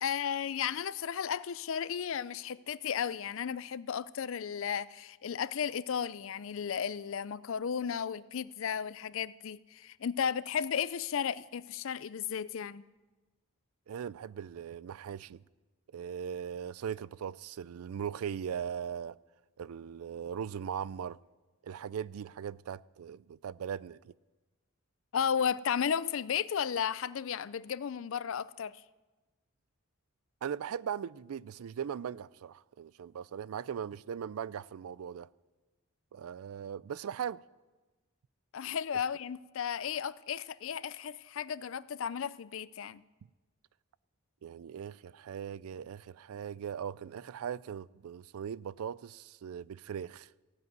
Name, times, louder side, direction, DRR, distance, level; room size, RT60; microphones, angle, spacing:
voice 1, 0.0-12.8 25.1-28.8 38.5-43.0, left 7 dB, 65° left, 0.4 m, -34 dB
voice 2, 13.9-15.4 15.9-19.2 19.6-21.2 21.6-24.1 30.4-35.3 36.1-37.4 44.4-50.3, right 8 dB, 80° right, 0.3 m, -39 dB
15.0 x 8.0 x 9.1 m
head